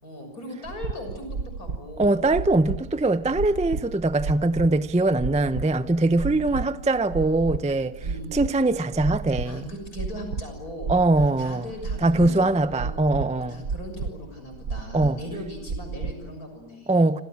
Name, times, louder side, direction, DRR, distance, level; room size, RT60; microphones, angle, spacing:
voice 1, 0.0-2.2 6.4-6.7 8.0-8.3 9.4-13.0 13.4-17.0, left 1 dB, 55° left, 7.1 m, -39 dB
sound 1, 0.7-16.3, right 4 dB, 50° right, 1.6 m, -33 dB
voice 2, 2.0-7.9 8.3-9.6 10.9-11.6 12.0-13.6 14.9-15.2 16.9-17.2, right 2 dB, 10° right, 0.3 m, -22 dB
28.5 x 27.0 x 7.5 m
omnidirectional pair, 1.9 m